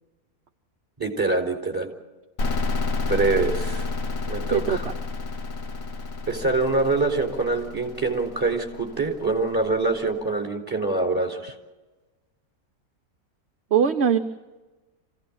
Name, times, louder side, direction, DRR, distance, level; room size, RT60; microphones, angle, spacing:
voice 1, 1.0-1.9 3.0-3.9 4.3-4.9 6.3-11.5, right 3 dB, 15° right, 4 dB, 4.2 m, -25 dB
sound 1, 2.4-9.9, left 3 dB, 70° left, 1.8 m, -30 dB
voice 2, 4.5-4.9 13.7-14.2, right 7 dB, 50° right, 7 dB, 1.2 m, -21 dB
27.5 x 17.0 x 8.8 m, 1.2 s
omnidirectional pair, 1.5 m